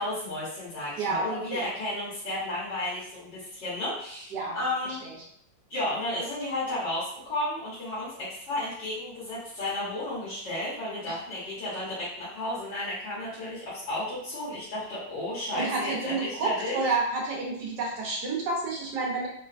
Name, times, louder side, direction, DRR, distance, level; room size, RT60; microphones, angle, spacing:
voice 1, 0.0-5.0 5.7-16.8, left 1 dB, 75° left, -11 dB, 1.8 m, -33 dB
voice 2, 1.0-1.7 4.3-4.6 5.0-5.1 11.0-11.2 15.5-19.3, right 3 dB, 70° right, -2 dB, 1.3 m, -30 dB
3.9 x 2.1 x 2.4 m, 0.66 s
omnidirectional pair, 2.0 m